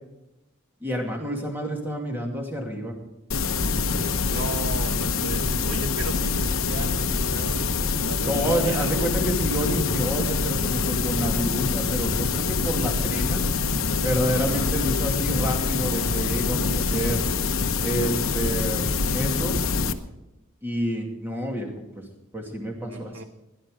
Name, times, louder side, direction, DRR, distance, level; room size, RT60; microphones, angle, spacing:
voice 1, 0.8-3.0 8.3-13.4 14.0-17.2 17.8-18.8 19.1-19.6 20.6-21.7 22.3-23.3, equal, 10° right, 1 dB, 2.4 m, -28 dB
sound 1, 3.3-19.9, left 4 dB, 80° left, 0.9 m, -25 dB
voice 2, 4.3-9.2 14.3-14.7 22.9-23.2, right 3 dB, 70° right, 9 dB, 0.9 m, -36 dB
17.0 x 11.0 x 5.0 m, 0.94 s
head